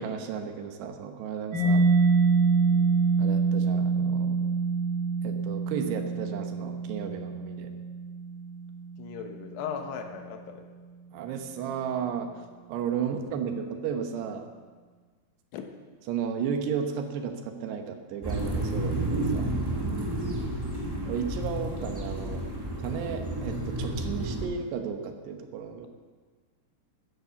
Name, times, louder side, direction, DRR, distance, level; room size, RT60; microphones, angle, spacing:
voice 1, 0.0-1.9 3.2-4.4 5.2-7.7 11.1-12.3 12.7-14.5 16.1-19.5 21.0-22.4 22.8-25.9, right 7 dB, 80° right, 5 dB, 3.2 m, -34 dB
Mallet percussion, 1.5-9.0, right 4 dB, 60° right, 4.7 m, -25 dB
voice 2, 9.0-10.7 15.5-15.7, left 7 dB, 80° left, 5 dB, 3.3 m, -37 dB
sound 1, 18.2-24.4, right 1 dB, 10° right, 1.7 m, -31 dB
13.5 x 9.9 x 7.0 m, 1.5 s
omnidirectional pair, 4.9 m